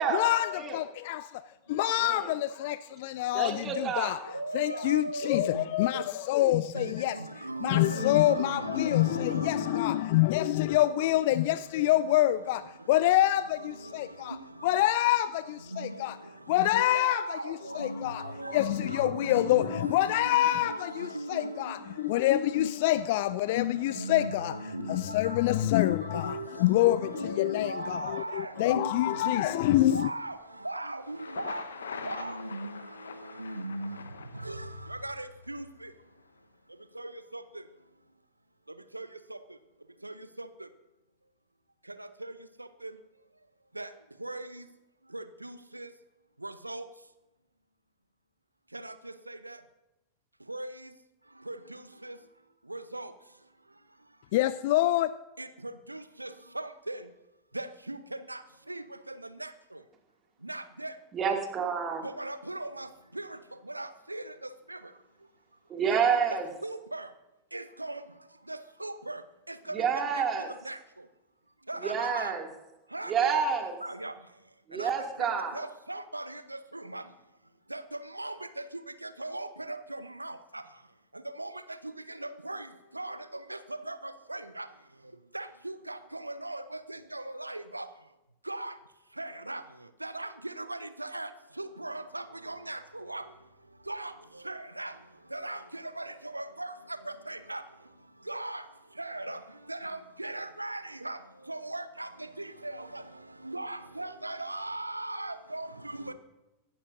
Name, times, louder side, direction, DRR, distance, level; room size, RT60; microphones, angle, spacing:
voice 1, 0.0-1.4 1.7-7.2 7.6-14.4 14.6-16.2 16.5-30.1 54.3-55.2, left 14 dB, 50° left, 0.3 m, -26 dB
voice 2, 2.0-2.3 3.3-4.2 61.1-62.0 65.7-66.5 69.7-70.5 71.8-72.5 73.1-73.8 74.7-75.6, right 6 dB, 25° right, 2.4 m, -28 dB
voice 3, 4.3-5.7 5.9-6.0 6.7-9.8 10.4-10.5 10.8-10.9 11.8-11.9 13.6-13.9 14.3-14.4 15.7-16.1 16.7-21.7 22.6-22.7 23.8-30.4 30.6-32.8 33.2-34.0 34.4-35.9 37.0-37.4 38.9-39.4 40.0-40.5 42.2-42.3 42.8-42.9 43.8-43.9 44.2-44.6 45.1-45.9 46.4-46.8 48.7-49.6 50.5-50.7 51.5-52.1 52.7-53.1 55.4-57.0 57.5-58.0 58.3-58.4 58.7-59.5 60.4-60.9 62.0-62.9 63.1-63.3 63.7-64.2 64.7-64.8 66.1-66.2 66.6-67.1 67.5-68.0 68.5-69.2 69.5-69.7 70.1-70.2 70.6-70.8 71.7-72.3 72.9-73.4 73.8-74.1 74.8-74.9 75.2-75.3 75.5-77.0 77.7-77.8 78.1-78.3 79.0-80.6 81.4-81.5 82.1-82.7 82.9-83.2 83.5-83.6 83.9-84.7 85.3-87.9 88.5-88.7 89.2-89.6 90.0-91.3 91.6-93.2 93.9-94.1 94.4-94.9 95.3-96.7 97.1-97.6 98.3-98.6 99.0-99.4 99.7-101.2 101.5-102.1 102.4-103.0 103.4-106.1, right 2 dB, 85° right, 0.8 m, -38 dB
Thunder, 31.0-35.0, left 6 dB, 65° left, 1.0 m, -43 dB
24.0 x 11.5 x 2.7 m
figure-of-eight pair, 90°, 0 cm